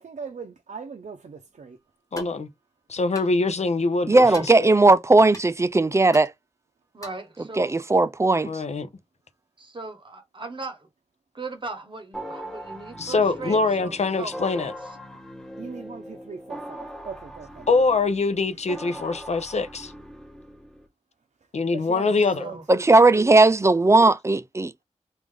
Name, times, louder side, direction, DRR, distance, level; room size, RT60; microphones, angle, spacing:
voice 1, 0.0-1.8 15.1-15.2 15.6-17.7 18.5-18.6 21.4-23.3, right 5 dB, 75° right, 0.7 m, -40 dB
voice 2, 2.1-2.5 2.9-4.5 8.5-8.9 13.0-14.7 17.7-19.9 21.5-22.5, left 3 dB, 65° left, 0.7 m, -24 dB
sound 1, 2.1-2.4 3.1-3.3 4.3-4.5 5.3-5.4 6.1-6.3 7.0-7.3, equal, 25° left, 1.3 m, -39 dB
voice 3, 4.1-6.3 7.6-8.5 22.7-24.8, right 2 dB, 20° right, 0.4 m, -17 dB
voice 4, 6.9-7.9 9.6-10.9 11.3-15.0 22.0-22.6, right 3 dB, 40° right, 0.9 m, -38 dB
sound 2, 12.1-20.9, equal, 5° left, 0.8 m, -40 dB
3.3 x 2.5 x 3.6 m
wide cardioid pair, 85°, 13 cm